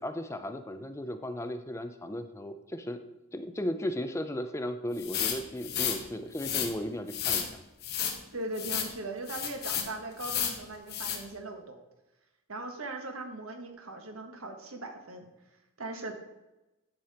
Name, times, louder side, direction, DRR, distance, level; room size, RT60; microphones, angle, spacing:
voice 1, 0.0-3.0 3.3-7.5, left 1 dB, 15° left, 9 dB, 0.4 m, -35 dB
sound 1, 5.0-6.0 6.3-6.7 7.1-7.5 7.8-8.2 8.5-8.9 9.3-9.9 10.2-10.6 10.9-11.2, left 8 dB, 50° left, 1.2 m, -31 dB
voice 2, 8.3-11.8 12.5-15.3 15.8-16.1, right 2 dB, 80° right, 4 dB, 1.5 m, -39 dB
10.5 x 5.8 x 4.2 m, 1.0 s
head